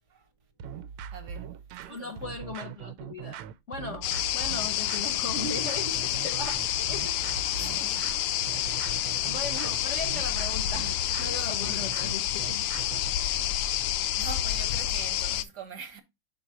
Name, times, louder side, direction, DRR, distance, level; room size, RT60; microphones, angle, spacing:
sound 1, 0.6-13.2, right 8 dB, 85° right, 1.5 m, -41 dB
voice 1, 1.1-1.5 1.8-2.2 6.0-6.2 7.6-8.0 11.4-11.8 13.1-13.5 14.2-16.0, right 5 dB, 55° right, 1.5 m, -44 dB
voice 2, 1.9-3.4 3.7-6.5 6.8-7.1 7.6-7.9 9.2-12.7 13.2-13.6, left 3 dB, 55° left, 0.8 m, -38 dB
sound 2, 4.0-15.4, left 12 dB, 85° left, 1.5 m, -29 dB
6.0 x 4.0 x 4.7 m
omnidirectional pair, 2.4 m